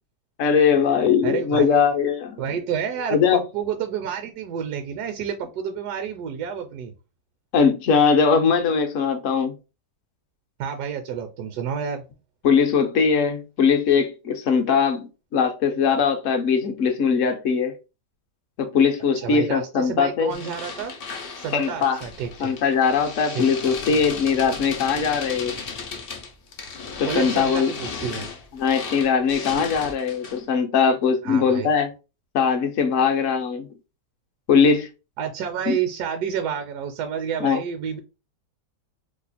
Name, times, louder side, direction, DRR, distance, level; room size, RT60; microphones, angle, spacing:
voice 1, 0.4-2.4 3.1-3.4 7.5-9.6 12.4-17.7 18.6-20.3 21.5-22.0 22.4-25.6 27.0-27.7 28.5-31.9 32.3-33.7 34.5-34.9 35.7-35.8 37.4-37.6, left 6 dB, 60° left, 0.8 m, -20 dB
voice 2, 1.2-1.8 2.4-6.9 10.6-12.0 19.1-20.9 21.4-22.5 23.3-23.5 27.1-28.3 31.2-31.7 35.2-38.0, right 7 dB, 75° right, 1.1 m, -29 dB
sound 1, 20.3-30.5, left 5 dB, 85° left, 0.5 m, -35 dB
2.9 x 2.3 x 4.0 m
omnidirectional pair, 1.8 m